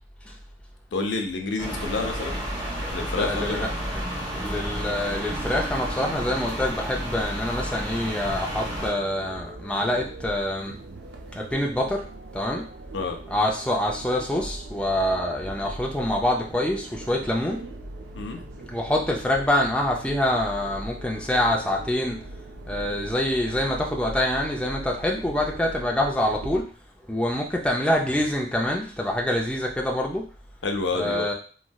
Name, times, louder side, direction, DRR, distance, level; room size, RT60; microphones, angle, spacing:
voice 1, 0.9-2.4 2.9-3.7 12.9-13.2 18.1-18.4 30.6-31.3, left 3 dB, 85° left, 4 dB, 0.5 m, -28 dB
sound 1, 1.6-8.9, equal, 20° right, 0.8 m, -31 dB
voice 2, 3.1-3.7 4.3-10.8 11.3-12.0 12.3-12.6 13.3-17.6 18.7-22.2 22.7-26.6 27.1-30.2 30.9-31.3, left 1 dB, 5° left, 0 dB, 0.4 m, -25 dB
sound 2, 8.7-26.6, right 2 dB, 75° right, 0.4 m, -40 dB
3.1 x 2.6 x 2.2 m, 0.41 s
head